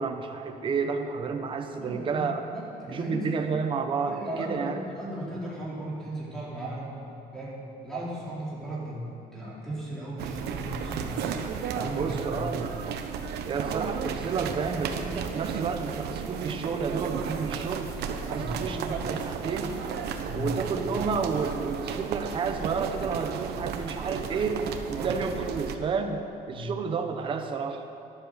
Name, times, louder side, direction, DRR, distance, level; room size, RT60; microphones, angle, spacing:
voice 1, 0.0-2.4 2.9-4.8 12.0-12.8 13.4-17.9 18.3-19.8 20.3-27.8, right 5 dB, 30° right, 5 dB, 1.0 m, -31 dB
voice 2, 1.8-2.3 2.5-3.5 4.0-7.1 7.3-9.0 9.3-12.5 18.2-18.6 20.2-20.5 24.9-25.2 26.5-26.7, right 1 dB, 5° left, -8 dB, 3.9 m, -37 dB
sound 1, 10.2-25.8, right 7 dB, 80° right, 1.1 m, -34 dB
sound 2, 10.3-25.8, equal, 45° right, 3.1 m, -51 dB
13.5 x 12.0 x 6.8 m, 2.6 s
cardioid pair, 175°, 17 cm